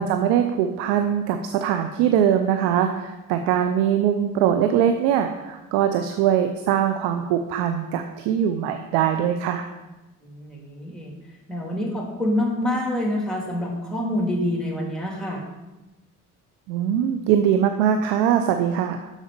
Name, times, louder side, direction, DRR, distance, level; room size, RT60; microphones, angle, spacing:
voice 1, 0.0-9.6 16.7-19.1, right 9 dB, 75° right, 7 dB, 0.7 m, -22 dB
voice 2, 10.2-11.1 11.5-15.4, left 1 dB, ahead, -2 dB, 3.2 m, -26 dB
7.2 x 6.4 x 5.2 m, 1.1 s
hypercardioid pair, 50°, 43 cm